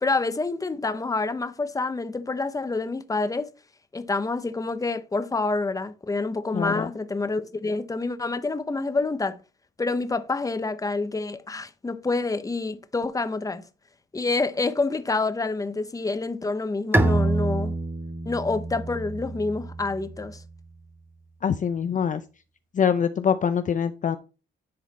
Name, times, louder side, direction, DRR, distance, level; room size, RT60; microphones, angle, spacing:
voice 1, 0.0-3.5 3.9-9.4 9.8-13.6 14.1-17.8 18.2-20.4, left 3 dB, 15° left, 0.8 m, -27 dB
voice 2, 6.5-6.9 21.4-22.2 22.8-24.2, left 7 dB, 40° left, 0.5 m, -24 dB
Bowed string instrument, 16.9-20.4, right 2 dB, 10° right, 0.9 m, -26 dB
10.5 x 4.0 x 4.2 m
cardioid pair, 90°, 20 cm